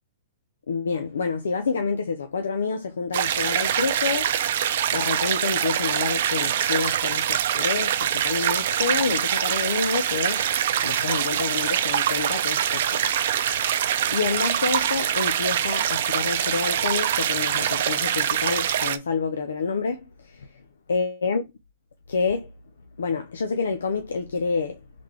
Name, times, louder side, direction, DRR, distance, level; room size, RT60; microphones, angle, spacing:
voice 1, 0.7-4.3 4.9-10.5 10.8-13.1 13.4-13.8 14.1-20.5 20.9-21.4 22.1-22.5 23.0-24.8, left 5 dB, 90° left, 0.5 m, -28 dB
sound 1, 3.1-19.0, right 10 dB, 65° right, 0.5 m, -24 dB
3.8 x 3.2 x 3.5 m
hypercardioid pair, 135°, 0 cm